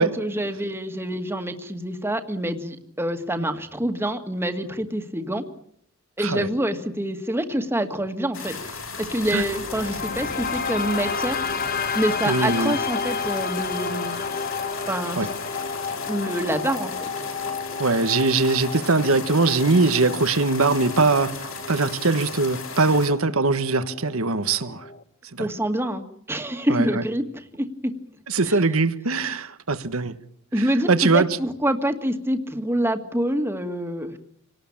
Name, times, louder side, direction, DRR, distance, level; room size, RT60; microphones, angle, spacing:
voice 1, 0.0-5.4 6.2-11.4 11.9-14.2 14.9-15.3 16.1-17.1 25.4-27.7 28.5-28.6 30.5-34.2, right 1 dB, 10° right, 2.0 m, -26 dB
sound 1, 8.3-23.1, left 5 dB, 65° left, 6.1 m, -36 dB
sound 2, 9.0-25.0, left 5 dB, 45° left, 1.2 m, -32 dB
voice 2, 12.3-12.8 15.2-15.3 17.8-24.9 25.3-25.5 26.7-27.0 28.3-30.1 30.6-31.3, right 3 dB, 80° right, 1.4 m, -21 dB
28.0 x 19.0 x 8.8 m
head